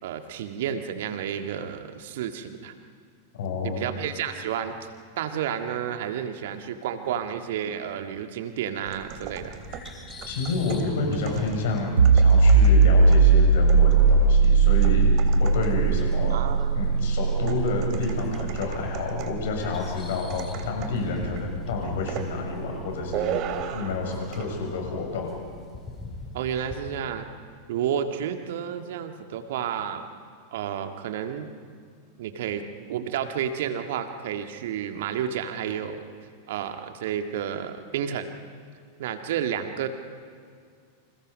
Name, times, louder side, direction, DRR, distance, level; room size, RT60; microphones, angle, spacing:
voice 1, 0.0-2.7 3.6-4.9 5.2-9.6 16.3-16.8 26.3-27.3 27.7-30.1 30.5-31.5 32.2-36.1 36.5-38.3 39.0-39.9, right 9 dB, 55° right, 7 dB, 1.8 m, -31 dB
voice 2, 3.4-3.9 10.3-15.1 15.4-16.4 16.7-23.4 23.7-25.3, left 3 dB, 55° left, 1 dB, 6.9 m, -29 dB
sound 1, 8.9-15.9 17.5-19.5 20.3-21.0 21.4-21.6 22.1-22.3 23.1-24.0 24.3-24.5, right 9 dB, 40° right, 2.6 m, -37 dB
sound 2, 9.0-26.8, left 3 dB, 20° left, 5.8 m, -44 dB
sound 3, 12.0-23.4, right 4 dB, 75° right, 2.0 m, -20 dB
29.5 x 28.0 x 5.3 m, 2.2 s
figure-of-eight pair, 90°, 0 cm